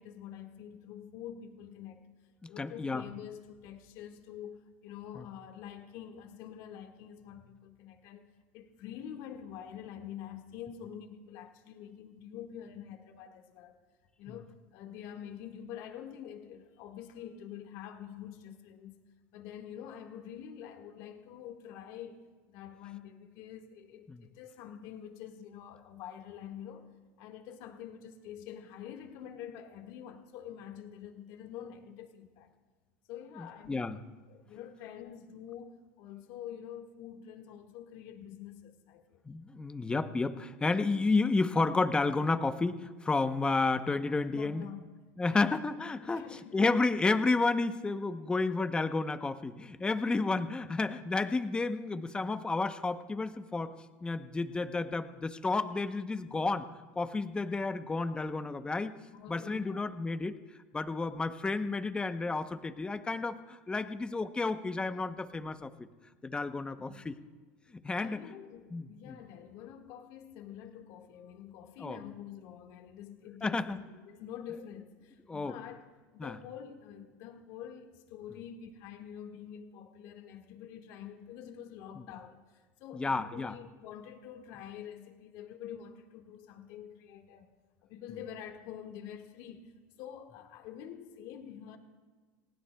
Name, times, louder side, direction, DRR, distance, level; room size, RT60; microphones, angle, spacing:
voice 1, 0.0-2.1 2.5-8.3 8.5-13.8 14.2-19.0 19.3-26.9 27.2-32.5 33.1-39.2 44.3-44.8 45.3-45.5 46.0-46.6 59.1-59.9 66.9-67.1 68.0-75.8 76.1-87.5 87.8-91.8, left 9 dB, 65° left, 4 dB, 1.8 m, -46 dB
voice 2, 2.4-3.0 5.1-5.2 24.1-24.2 33.4-34.0 39.3-44.7 45.2-53.7 54.0-56.7 56.9-59.0 59.3-60.4 60.7-65.7 66.2-67.2 67.8-68.3 68.7-69.2 71.8-72.0 73.4-73.8 75.3-75.5 76.2-76.4 82.0-82.1 82.9-83.5, left 3 dB, 15° left, 9 dB, 0.8 m, -31 dB
29.5 x 16.0 x 2.3 m, 1.4 s
supercardioid pair, 120°, 7 cm